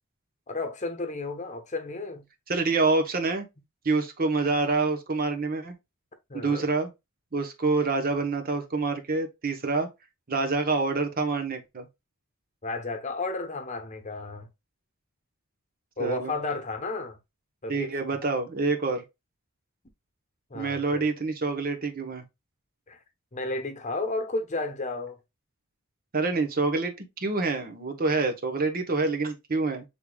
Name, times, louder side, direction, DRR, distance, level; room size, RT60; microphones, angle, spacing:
voice 1, 0.5-2.2 6.3-6.7 12.6-14.5 16.0-17.2 17.6-17.9 20.5-21.1 22.9-23.0 23.3-25.2, left 3 dB, 35° left, 0.9 m, -32 dB
voice 2, 2.5-3.5 3.8-5.8 6.3-6.9 7.3-9.9 10.3-11.9 16.0-16.3 17.7-19.0 20.5-22.2 26.1-29.8, right 3 dB, 45° right, 0.9 m, -27 dB
6.6 x 3.6 x 2.3 m
head